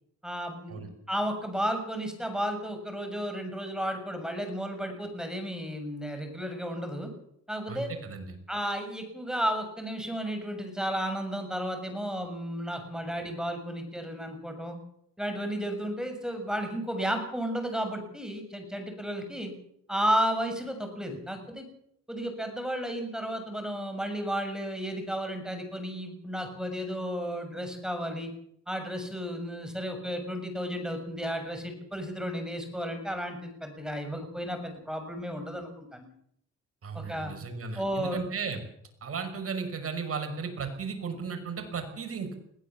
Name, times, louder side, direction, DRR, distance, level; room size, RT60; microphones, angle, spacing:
voice 1, 0.2-0.8 1.1-7.1 7.5-7.9 8.5-14.8 15.2-19.5 19.9-21.7 22.1-28.3 28.7-36.1 36.9-37.3 37.8-38.3, equal, ahead, 6 dB, 6.9 m, -33 dB
voice 2, 7.7-8.4 36.8-38.6 39.0-42.4, right 5 dB, 50° right, 6 dB, 5.8 m, -35 dB
21.5 x 16.5 x 7.4 m, 0.70 s
cardioid pair, 90°, 30 cm